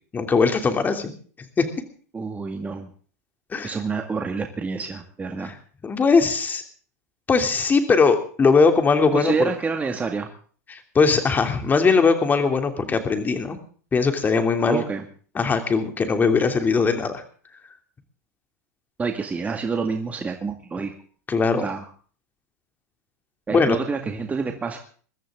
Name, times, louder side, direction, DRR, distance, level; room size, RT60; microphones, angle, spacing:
voice 1, 0.1-1.1 1.6-1.7 3.5-3.8 5.4-5.5 5.8-6.6 7.3-9.5 10.7-13.6 13.9-14.8 15.3-17.2 21.3-21.7 23.5-23.8, left 4 dB, 20° left, 7 dB, 2.9 m, -20 dB
voice 2, 2.1-2.9 3.6-5.5 9.1-10.3 14.7-15.0 19.0-20.9 21.6-21.9 23.5-24.8, right 4 dB, 15° right, 4 dB, 2.0 m, -27 dB
22.0 x 14.0 x 3.7 m, 0.43 s
hypercardioid pair, 110°, 9 cm